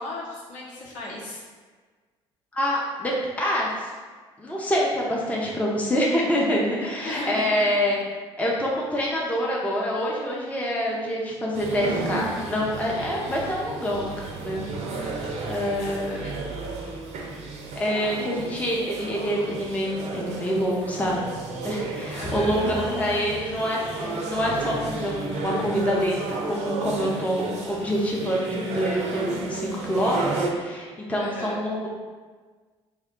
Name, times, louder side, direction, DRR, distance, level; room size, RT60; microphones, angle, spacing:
voice 1, 0.0-1.4 7.0-7.9 15.8-16.5 22.2-23.6 31.2-31.7, left 2 dB, 55° left, -5 dB, 0.8 m, -36 dB
voice 2, 2.5-3.9 4.4-8.0 8.4-14.1 14.4-14.6 15.0-15.1 15.5-16.2 17.8-21.2 21.6-31.9, equal, 10° left, -4 dB, 0.6 m, -26 dB
sound 1, 11.5-30.5, right 3 dB, 50° right, 0.5 m, -33 dB
sound 2, 22.2-27.3, left 2 dB, 75° left, 1.3 m, -41 dB
2.7 x 2.1 x 3.6 m, 1.4 s
figure-of-eight pair, 55°, 15 cm